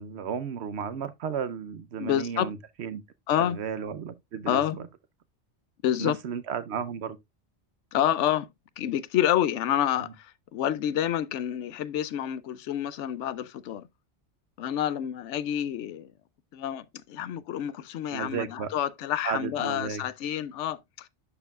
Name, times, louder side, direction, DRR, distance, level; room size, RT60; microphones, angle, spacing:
voice 1, 0.0-3.0 3.4-4.6 6.0-7.2 18.1-18.7 19.2-20.0, right 7 dB, 70° right, 0.9 m, -33 dB
voice 2, 2.0-2.5 3.3-3.6 4.5-4.8 5.8-6.2 7.9-8.5 8.8-13.8 14.6-16.1 16.5-21.1, left 11 dB, 85° left, 0.9 m, -28 dB
11.0 x 4.6 x 2.3 m
omnidirectional pair, 1.2 m